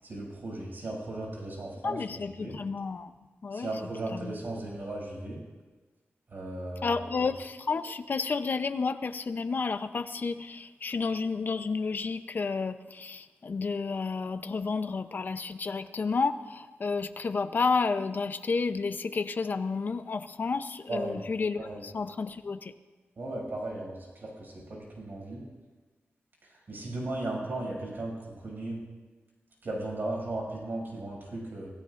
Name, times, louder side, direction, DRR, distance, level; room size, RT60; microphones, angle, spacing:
voice 1, 0.0-2.6 3.5-5.4 6.3-7.0 20.9-21.2 21.6-21.8 23.2-25.5 26.4-28.8 29.6-31.7, right 2 dB, 55° right, -3 dB, 6.5 m, -36 dB
voice 2, 1.8-3.1 3.4-3.7 4.1-4.4 6.8-22.7, left 4 dB, 45° left, 9 dB, 0.7 m, -31 dB
27.0 x 16.5 x 2.6 m, 1.3 s
wide cardioid pair, 150°, 4 cm